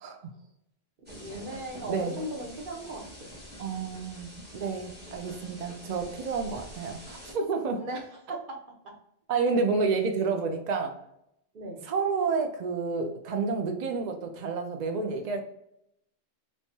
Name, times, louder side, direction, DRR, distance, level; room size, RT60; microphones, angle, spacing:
sound 1, 1.1-7.3, equal, 10° right, 1.0 m, -46 dB
voice 1, 1.1-3.3 7.8-8.6 8.8-8.9 11.5-11.8, right 1 dB, 45° right, 1 dB, 0.9 m, -38 dB
voice 2, 1.8-2.2 3.6-7.8 9.3-10.9 11.9-15.4, right 4 dB, 70° right, 4 dB, 0.4 m, -30 dB
3.4 x 3.0 x 2.7 m, 0.78 s
omnidirectional pair, 1.3 m